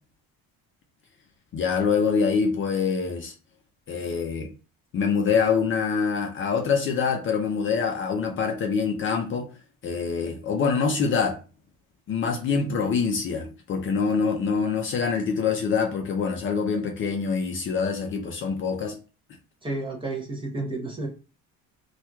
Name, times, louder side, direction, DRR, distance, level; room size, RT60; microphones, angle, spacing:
voice 1, 1.5-3.3 3.9-4.5 4.9-9.5 9.8-11.4 12.1-19.0, left 5 dB, 35° left, 0.5 m, -25 dB
voice 2, 19.6-21.1, right 2 dB, 15° right, 0.6 m, -31 dB
4.3 x 2.3 x 2.2 m
cardioid pair, 155°, 35 cm